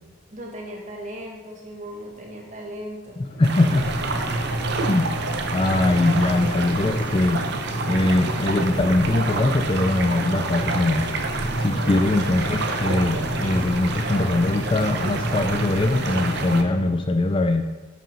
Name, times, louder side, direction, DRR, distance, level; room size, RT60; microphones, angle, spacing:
voice 1, 0.3-3.2 11.7-12.1, equal, 35° right, -1 dB, 1.6 m, -37 dB
sound 1, 3.2-17.1, equal, 50° left, 1.8 m, -30 dB
voice 2, 3.2-3.9 4.8-5.1 5.5-7.4 7.9-11.1 11.6-17.6, left 2 dB, 25° left, 6 dB, 0.4 m, -22 dB
sound 2, 3.4-16.6, right 4 dB, 50° right, 0.7 m, -30 dB
7.1 x 6.1 x 5.5 m, 1.2 s
head